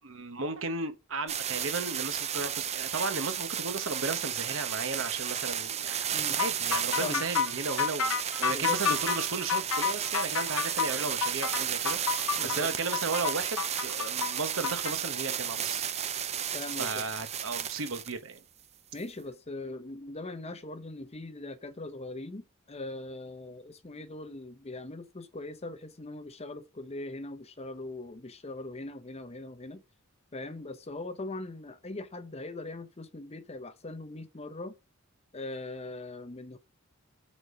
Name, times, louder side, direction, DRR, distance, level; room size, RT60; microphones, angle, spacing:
voice 1, 0.0-6.1 6.3-15.8 16.8-18.4, right 4 dB, 65° right, 1.1 m, -35 dB
sound 1, 1.3-18.1 19.0-19.1, right 9 dB, 30° right, 0.5 m, -33 dB
sound 2, 6.4-14.9, left 7 dB, 75° left, 0.8 m, -30 dB
voice 2, 12.4-12.7 16.5-17.0 18.9-29.8 30.3-34.8 35.3-36.6, left 2 dB, 30° left, 0.7 m, -40 dB
7.8 x 4.1 x 4.9 m
head